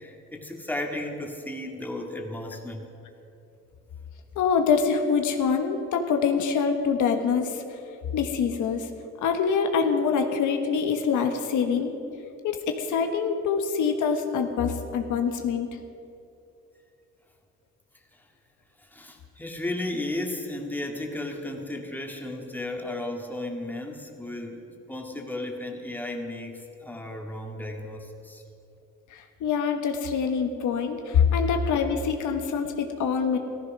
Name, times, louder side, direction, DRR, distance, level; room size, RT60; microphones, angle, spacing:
voice 1, 0.0-2.9 18.8-28.4, left 1 dB, 5° left, 1 dB, 2.1 m, -34 dB
voice 2, 4.3-7.6 8.1-8.9 9.2-11.9 12.4-15.7 29.1-33.4, left 6 dB, 80° left, 5 dB, 1.4 m, -25 dB
15.0 x 14.0 x 6.1 m, 2.7 s
cardioid pair, 90°, 30 cm